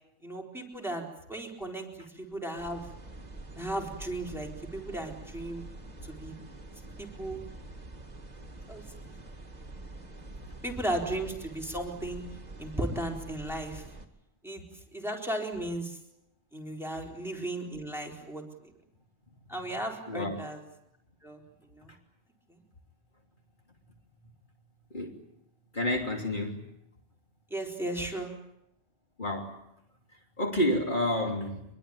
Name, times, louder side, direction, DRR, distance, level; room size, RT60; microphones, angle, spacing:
voice 1, 0.2-1.9 2.1-2.9 3.5-5.6 6.1-6.3 7.0-7.4 8.7-9.1 10.6-12.2 12.6-13.8 14.4-14.6 14.9-16.0 16.5-18.7 19.5-20.6 21.2-21.4 21.7-21.9 22.5-22.6 27.5-28.3, right 1 dB, ahead, 0 dB, 4.2 m, -35 dB
sound 1, 2.6-14.1, right 2 dB, 35° right, 2.0 m, -46 dB
voice 2, 25.7-26.6 29.2-29.5 30.4-31.6, left 1 dB, 40° left, 0 dB, 3.5 m, -29 dB
24.5 x 22.0 x 8.9 m, 0.81 s
omnidirectional pair, 1.3 m